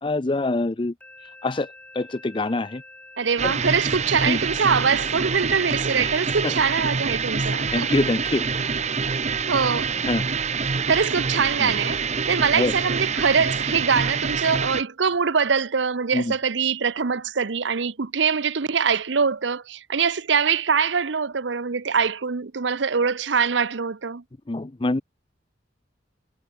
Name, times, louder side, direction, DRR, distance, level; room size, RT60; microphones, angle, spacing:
voice 1, 0.0-0.9 1.4-1.7 1.9-2.8 3.4-3.5 4.3-4.4 6.4-6.5 7.7-8.4 10.1-10.2 11.6-11.7 12.6-12.7 16.1-16.3 24.5-25.0, left 2 dB, 25° left, 0.5 m, -24 dB
sound 1, 1.0-10.7, left 1 dB, 10° left, 3.1 m, -46 dB
voice 2, 3.2-7.9 9.5-9.9 10.9-24.2, right 6 dB, 75° right, 0.8 m, -23 dB
sound 2, 3.4-14.8, right 5 dB, 35° right, 1.1 m, -26 dB
head